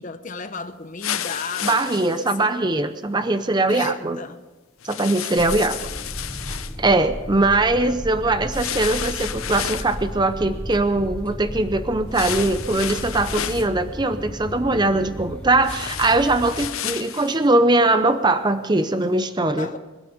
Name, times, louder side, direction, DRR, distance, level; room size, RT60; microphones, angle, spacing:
voice 1, 0.0-2.5 3.7-4.4 5.3-5.9 7.4-7.6 19.6-19.8, left 4 dB, 40° left, 10 dB, 0.9 m, -35 dB
sound 1, 1.0-2.4 4.8-6.8 8.5-10.0 12.1-13.7 15.6-17.4, left 10 dB, 85° left, 0.7 m, -31 dB
voice 2, 1.6-4.2 4.8-5.8 6.5-19.7, right 2 dB, 20° right, 10 dB, 0.6 m, -21 dB
sound 2, 5.4-16.7, equal, 5° left, 0.9 m, -34 dB
25.5 x 9.0 x 5.1 m, 1.2 s
head